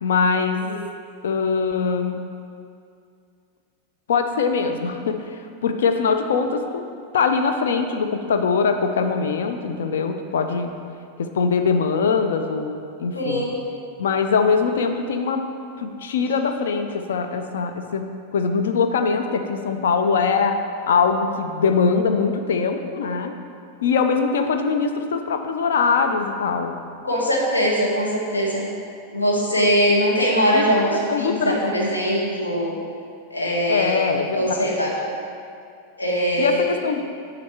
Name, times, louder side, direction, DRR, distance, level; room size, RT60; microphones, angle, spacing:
voice 1, 0.0-0.6 1.2-2.2 4.1-6.9 7.1-10.7 11.2-13.5 14.0-15.5 15.8-23.4 23.8-26.7 30.5-30.6 31.1-31.6 33.7-34.7 36.4-37.0, left 5 dB, 60° left, 6 dB, 0.5 m, -22 dB
voice 2, 13.1-13.6 27.0-28.7 29.1-32.8 33.3-34.0 34.3-35.0 36.0-36.7, equal, 80° left, -3 dB, 1.3 m, -21 dB
7.0 x 5.1 x 4.6 m, 2.4 s
figure-of-eight pair, 90°, 0 cm